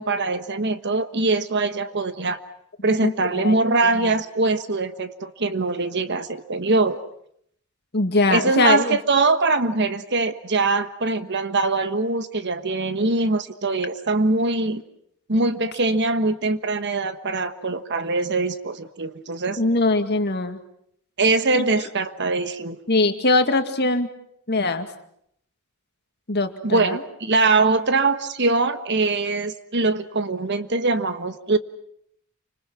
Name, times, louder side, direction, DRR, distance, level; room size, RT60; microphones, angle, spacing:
voice 1, 0.0-2.4 2.8-7.0 8.3-14.8 15.3-19.6 21.2-22.8 26.6-31.6, right 3 dB, 50° right, 11 dB, 1.3 m, -22 dB
voice 2, 3.0-3.6 4.0-4.1 7.9-9.0 19.6-20.6 21.5-21.6 22.9-24.1 24.5-24.9 26.3-27.0, left 2 dB, 50° left, 7 dB, 2.1 m, -21 dB
29.0 x 26.0 x 6.1 m, 0.70 s
head